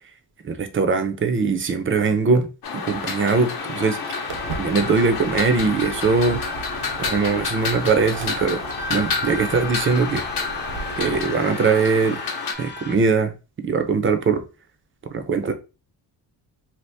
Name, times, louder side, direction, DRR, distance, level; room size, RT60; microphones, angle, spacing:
voice 1, 0.4-2.5 2.7-4.0 4.6-6.4 7.0-8.6 8.9-10.2 11.0-12.2 12.6-13.3 13.6-14.4 15.1-15.5, right 4 dB, 30° right, 0.5 m, -21 dB
sound 1, 2.6-12.5, left 5 dB, 60° left, 0.8 m, -29 dB
sound 2, 3.6-13.0, left 2 dB, 30° left, 0.4 m, -37 dB
Walk footsteps, 4.3-11.2, right 5 dB, 80° right, 0.8 m, -37 dB
2.8 x 2.5 x 3.3 m
cardioid pair, 120°, 42 cm